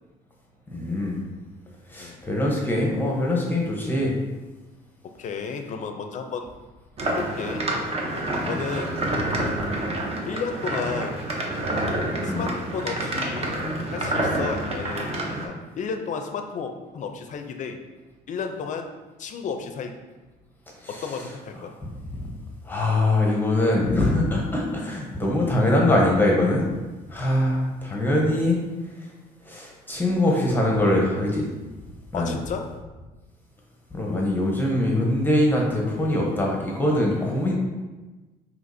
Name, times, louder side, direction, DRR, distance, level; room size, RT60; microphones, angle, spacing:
voice 1, 0.7-1.2 1.9-4.1 8.4-8.5 12.2-12.5 20.8-21.1 22.1-22.3 22.6-26.7 27.1-28.6 29.0-29.1 29.5-31.5 32.1-32.4 33.9-37.5, left 1 dB, 10° left, -2 dB, 0.7 m, -23 dB
voice 2, 5.0-6.5 7.1-7.6 8.5-9.0 10.2-11.2 12.2-13.6 13.9-17.8 18.3-18.9 19.2-19.9 20.9-21.7 32.1-32.7, left 5 dB, 50° left, 6 dB, 0.4 m, -32 dB
sound 1, 7.0-15.5, right 1 dB, 35° right, 0.7 m, -28 dB
5.7 x 2.8 x 2.6 m, 1.2 s
cardioid pair, 110°, 17 cm